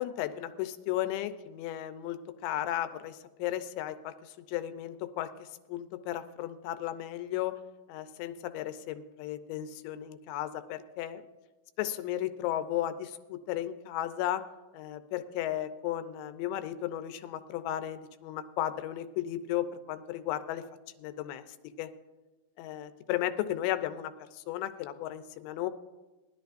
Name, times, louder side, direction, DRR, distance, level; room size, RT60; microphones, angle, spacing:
voice 1, 0.0-7.6 7.9-11.3 11.8-14.4 14.7-20.6 21.0-21.4 21.8-21.9 22.6-25.7, left 12 dB, 80° left, 10 dB, 2.8 m, -35 dB
19.5 x 12.0 x 2.5 m, 1.2 s
omnidirectional pair, 5.4 m